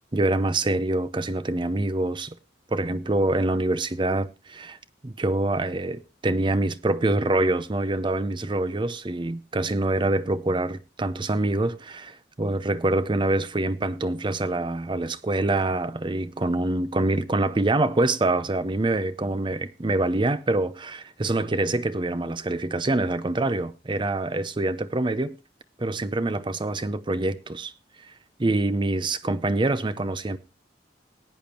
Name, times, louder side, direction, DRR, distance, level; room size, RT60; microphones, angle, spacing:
voice 1, 0.1-2.4 2.7-4.8 5.0-25.4 25.8-27.7 28.4-30.4, right 2 dB, 25° right, 0.6 m, -25 dB
20.0 x 8.7 x 2.9 m
head